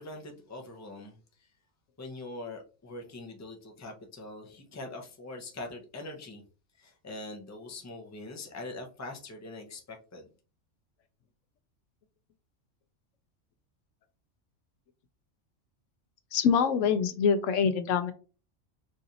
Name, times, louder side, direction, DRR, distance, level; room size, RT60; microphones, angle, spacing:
voice 1, 0.0-1.5 2.0-6.4 6.7-10.3, left 2 dB, 15° left, 3 dB, 0.6 m, -43 dB
voice 2, 16.3-18.1, left 6 dB, 80° left, 9 dB, 1.0 m, -25 dB
4.8 x 2.6 x 2.8 m, 0.34 s
omnidirectional pair, 1.3 m